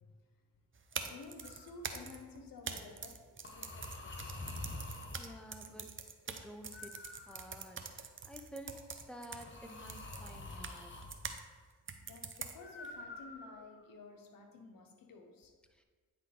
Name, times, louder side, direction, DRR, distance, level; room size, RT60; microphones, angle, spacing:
sound 1, 0.7-11.4 11.9-12.9, right 5 dB, 40° right, 0.6 m, -45 dB
voice 1, 1.0-4.4 12.0-15.5, left 4 dB, 85° left, 4 dB, 0.9 m, -53 dB
sound 2, 1.4-1.7 3.4-5.3 6.7-7.8 9.4-11.2 12.6-13.8, left 2 dB, 35° left, 1.0 m, -47 dB
voice 2, 5.2-5.9 6.3-11.0 15.7-15.8, equal, 5° left, 4 dB, 0.8 m, -51 dB
9.2 x 4.1 x 3.3 m, 1.5 s
cardioid pair, 50°, 33 cm